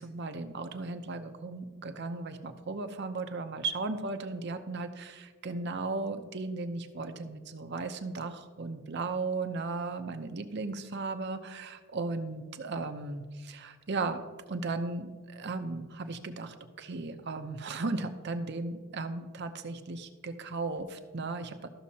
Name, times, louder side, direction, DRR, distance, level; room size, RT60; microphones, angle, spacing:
voice 1, 0.0-14.2 14.5-21.7, right 3 dB, 55° right, 7 dB, 0.7 m, -36 dB
13.5 x 6.2 x 2.8 m, 1.5 s
head